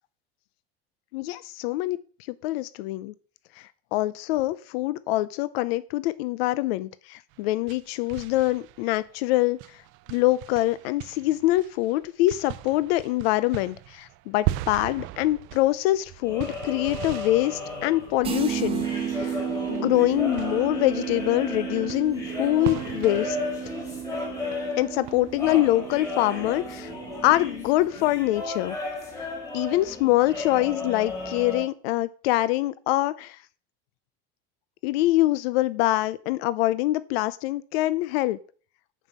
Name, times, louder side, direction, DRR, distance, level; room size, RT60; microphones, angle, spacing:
voice 1, 1.1-2.0 2.4-3.1 3.6-9.8 10.1-18.9 19.1-19.4 19.7-23.4 24.8-26.9 27.2-28.8 29.2-29.3 29.5-33.4 34.8-38.4, left 17 dB, 75° left, 16 dB, 0.6 m, -24 dB
sound 1, 7.3-25.4, right 16 dB, 40° right, 0.5 m, -39 dB
sound 2, 16.2-31.6, left 2 dB, 10° left, 3.2 m, -35 dB
sound 3, 18.2-27.9, right 8 dB, 20° right, 1.0 m, -33 dB
9.4 x 5.5 x 7.4 m, 0.42 s
cardioid pair, 165°, 31 cm